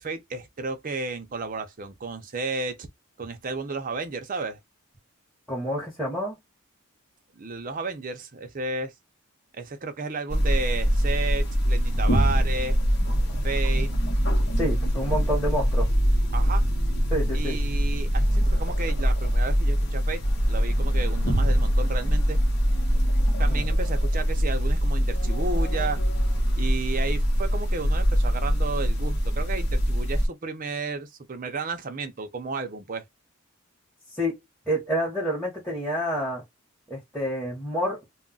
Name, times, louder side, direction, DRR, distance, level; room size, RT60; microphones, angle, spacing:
voice 1, 0.0-2.9 3.2-4.6 7.4-8.9 9.5-12.8 13.4-13.9 16.3-16.6 17.3-20.2 20.5-22.4 23.4-26.0 26.6-33.0, right 3 dB, 40° right, 0.5 m, -33 dB
voice 2, 5.5-6.4 14.6-15.9 17.1-17.6 23.5-23.7 34.1-34.4 34.7-36.4 36.9-38.0, equal, 5° left, 1.0 m, -28 dB
sound 1, 10.3-30.3, equal, 55° left, 0.9 m, -23 dB
2.3 x 2.1 x 3.8 m
head